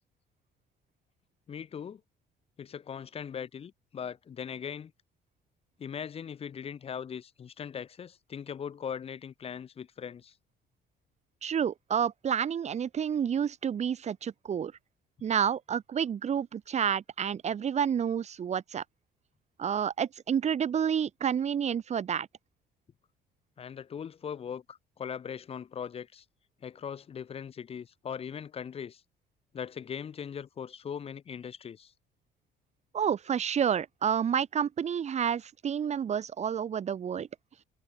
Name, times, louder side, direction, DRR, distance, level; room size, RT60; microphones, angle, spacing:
voice 1, 1.5-2.0 2.6-4.9 5.8-10.3 23.6-26.2 26.6-29.0 29.5-31.9, left 7 dB, 35° left, 0.8 m, -40 dB
voice 2, 11.4-14.7 15.2-18.8 19.6-22.3 32.9-37.3, right 8 dB, 40° right, 1.5 m, -29 dB
cardioid pair, 110°, 17 cm